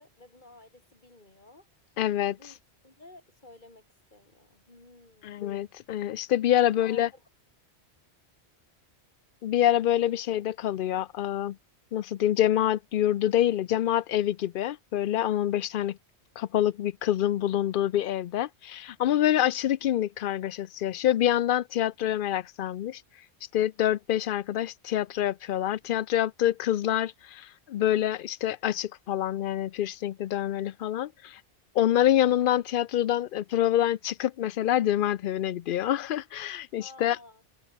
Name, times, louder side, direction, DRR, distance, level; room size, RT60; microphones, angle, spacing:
voice 1, 0.0-1.7 2.3-2.6 2.8-5.4 6.5-7.2 36.8-37.4, left 2 dB, 45° left, 4.4 m, -53 dB
voice 2, 2.0-2.4 5.2-7.1 9.4-11.6 11.9-16.0 16.4-23.0 23.5-31.4 31.7-37.2, left 12 dB, 60° left, 0.6 m, -26 dB
omnidirectional pair, 1.1 m